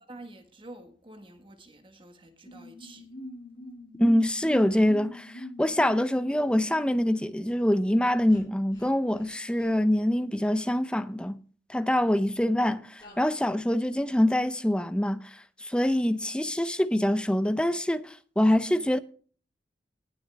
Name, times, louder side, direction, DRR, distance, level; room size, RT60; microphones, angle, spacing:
voice 1, 0.1-3.1, right 2 dB, 30° right, 1.4 m, -48 dB
sound 1, 2.4-7.3 8.3-8.4 8.7-8.8 9.1-9.3 9.6-9.7 13.0-13.5, left 1 dB, 25° left, 6.5 m, -43 dB
voice 2, 4.0-11.4 11.7-15.2 15.6-19.0, left 1 dB, 5° left, 0.5 m, -25 dB
19.0 x 6.8 x 3.4 m
head